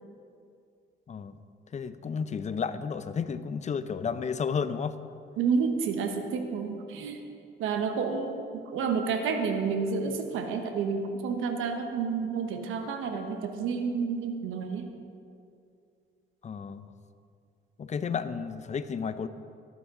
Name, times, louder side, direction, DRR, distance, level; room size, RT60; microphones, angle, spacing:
voice 1, 1.7-5.0 16.4-16.9 17.8-19.3, left 6 dB, 35° left, 12 dB, 0.6 m, -32 dB
voice 2, 5.4-7.2 7.6-8.4 8.6-14.9, right 5 dB, 90° right, 5 dB, 1.1 m, -30 dB
13.0 x 11.5 x 3.8 m, 2.4 s
cardioid pair, 90°, 20 cm